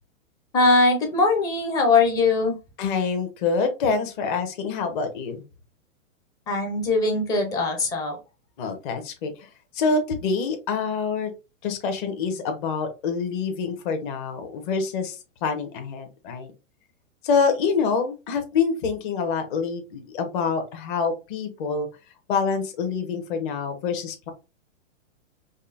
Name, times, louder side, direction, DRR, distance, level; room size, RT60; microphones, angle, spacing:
voice 1, 0.5-2.6 6.5-8.2, left 3 dB, 10° left, 3 dB, 0.5 m, -21 dB
voice 2, 2.8-5.4 8.6-9.5 9.7-11.3 11.6-16.5 17.2-21.9 22.3-24.3, left 5 dB, 40° left, 6 dB, 1.1 m, -26 dB
5.3 x 2.1 x 2.5 m, 0.28 s
hypercardioid pair, 150°, 39 cm